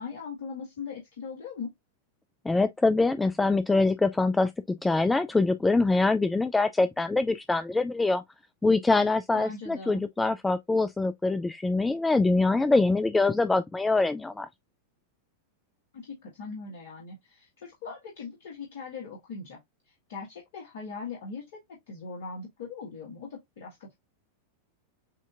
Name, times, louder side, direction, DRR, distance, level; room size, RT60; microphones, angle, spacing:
voice 1, 0.0-1.7 9.3-10.0 15.9-19.6 19.9-24.0, left 5 dB, 55° left, 1.5 m, -40 dB
voice 2, 2.5-8.2 8.6-14.5, left 3 dB, 10° left, 0.3 m, -24 dB
7.3 x 2.7 x 2.4 m
figure-of-eight pair, 90°, 0 cm